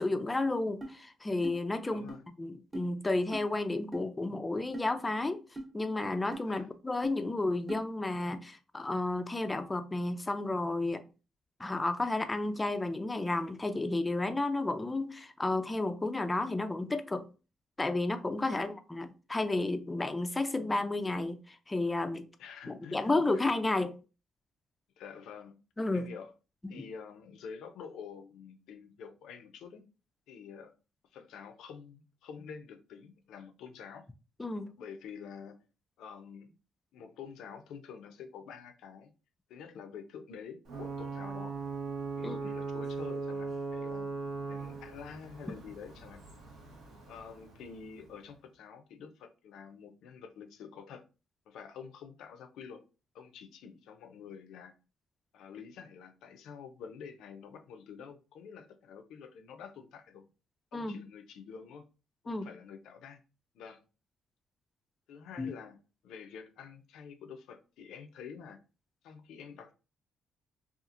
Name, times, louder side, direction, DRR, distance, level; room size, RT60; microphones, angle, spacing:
voice 1, 0.0-5.4 5.7-11.0 11.6-17.3 17.8-22.3 22.7-24.0 25.8-26.1 26.6-26.9 34.4-34.7 42.2-42.4 60.7-61.0 62.3-62.5 65.4-65.5, left 2 dB, 20° left, 0.3 m, -32 dB
sound 1, 0.8-0.9 1.4-1.6 2.1-2.2 2.7-2.9 3.3-3.5 3.9-4.1 4.7-4.9 5.5-5.7 6.3-6.5 7.0-7.1 7.7-7.8, right 1 dB, 20° right, 0.8 m, -41 dB
voice 2, 1.8-2.2 6.5-6.7 18.5-18.7 22.4-23.4 25.0-25.6 25.9-26.3 26.7-29.9 30.3-30.8 31.1-34.0 34.8-35.6 36.0-36.5 36.9-39.1 39.5-41.6 42.2-44.1 44.5-46.2 47.1-51.0 51.5-52.8 53.1-54.7 55.3-60.3 60.7-61.8 62.2-63.2 63.5-63.8 65.1-65.8 66.0-68.6 69.0-69.7, left 6 dB, 85° left, 0.4 m, -48 dB
Ocean / Boat Water vehicle / Alarm, 40.7-48.2, right 4 dB, 75° right, 0.9 m, -39 dB
2.8 x 2.4 x 2.4 m
cardioid pair, 90°, 0 cm